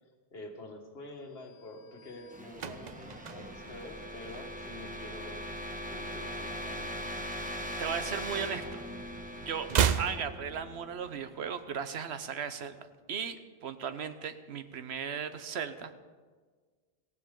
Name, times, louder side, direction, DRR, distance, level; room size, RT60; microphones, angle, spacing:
voice 1, 0.3-5.5 5.9-6.9, left 2 dB, 70° left, 3 dB, 1.8 m, -47 dB
sound 1, 1.6-11.4, equal, 10° right, 1.4 m, -41 dB
sound 2, 2.2-4.9 5.2-5.5 5.7-7.2 7.5-8.8 9.1-11.2 11.5-11.6, right 8 dB, 50° right, 0.6 m, -34 dB
voice 2, 7.8-8.8 9.4-9.7 10.0-15.9, right 7 dB, 80° right, 10 dB, 1.1 m, -37 dB
18.5 x 15.0 x 3.8 m, 1.5 s
omnidirectional pair, 1.1 m